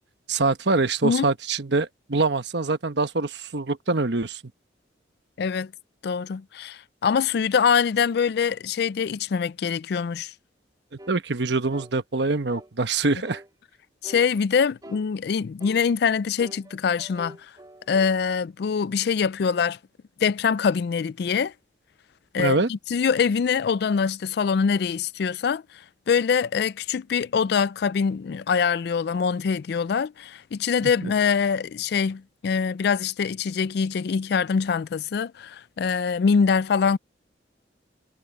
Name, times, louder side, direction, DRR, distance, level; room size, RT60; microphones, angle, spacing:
voice 1, 0.3-4.4 11.1-13.4 22.4-22.7 31.0-31.1, right 3 dB, 65° right, 1.1 m, -24 dB
voice 2, 5.4-5.7 6.0-10.3 14.0-17.4 17.9-19.8 20.2-21.5 22.3-25.6 26.1-37.0, left 6 dB, 60° left, 0.3 m, -24 dB
sound 1, 11.0-11.2 11.7-12.0 12.5-12.7 13.3-13.5 14.0-14.3 14.8-15.1 15.6-15.8 16.4-18.2, right 1 dB, 20° right, 3.5 m, -44 dB
head